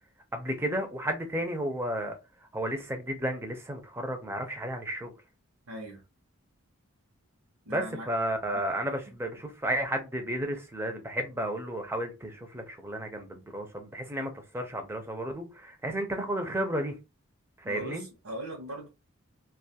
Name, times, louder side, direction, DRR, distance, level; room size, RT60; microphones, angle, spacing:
voice 1, 0.3-2.2 2.5-5.1 7.7-17.0 17.6-18.1, right 1 dB, 10° right, 0.4 m, -32 dB
voice 2, 5.7-6.0 7.6-8.1 8.5-8.6 9.1-9.2 17.6-18.9, right 1 dB, 85° right, 0.8 m, -40 dB
2.4 x 2.3 x 2.7 m
head